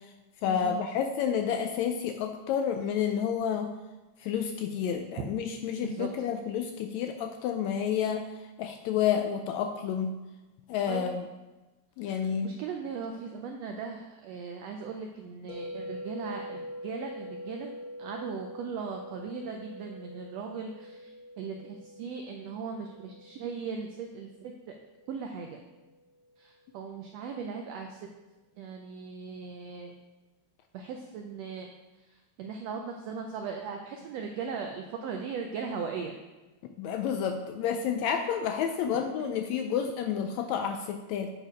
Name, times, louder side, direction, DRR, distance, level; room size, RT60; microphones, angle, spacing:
voice 1, 0.4-3.7 4.2-8.3 8.6-10.2 10.7-11.2 12.0-12.6 36.8-41.3, left 8 dB, 80° left, 6 dB, 1.6 m, -30 dB
voice 2, 12.0-17.7 18.0-21.1 21.4-24.7 25.1-25.6 26.4-28.1 28.6-29.9 30.7-31.7 32.4-36.2 38.9-39.3, right 5 dB, 85° right, 3 dB, 1.4 m, -38 dB
sound 1, 15.5-25.6, equal, 65° left, 3.0 m, -44 dB
8.8 x 4.4 x 5.0 m, 1.1 s
omnidirectional pair, 3.5 m